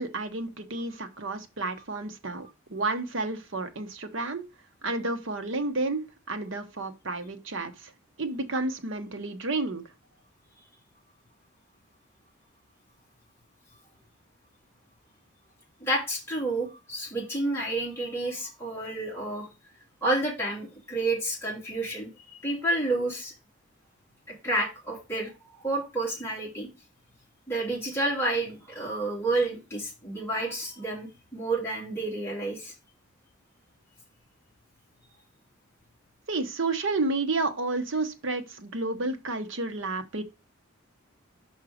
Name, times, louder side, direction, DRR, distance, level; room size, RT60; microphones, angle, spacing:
voice 1, 0.0-4.4 4.8-7.9 8.2-9.8 36.3-40.2, right 3 dB, 60° right, 0.9 m, -31 dB
voice 2, 15.8-19.5 20.0-23.3 24.3-25.3 25.6-26.7 27.5-32.7, right 2 dB, 10° left, 2.7 m, -30 dB
5.5 x 4.8 x 5.0 m
head